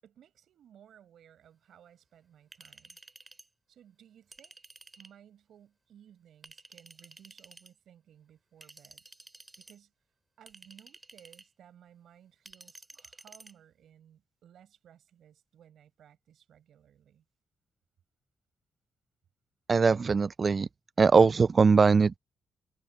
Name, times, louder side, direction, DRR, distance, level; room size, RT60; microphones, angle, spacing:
voice 1, 0.0-3.0 3.7-4.6 5.0-9.0 9.6-9.9 10.4-17.2, right 9 dB, 75° right, 5.9 m, -58 dB
Chink clink, 2.5-3.5 4.3-5.2 6.4-7.7 8.6-9.8 10.5-11.5 12.5-13.5, right 2 dB, 25° right, 5.9 m, -53 dB
voice 2, 19.7-20.7 21.0-22.2, right 5 dB, 40° right, 0.4 m, -21 dB
cardioid pair, 75°, 0 cm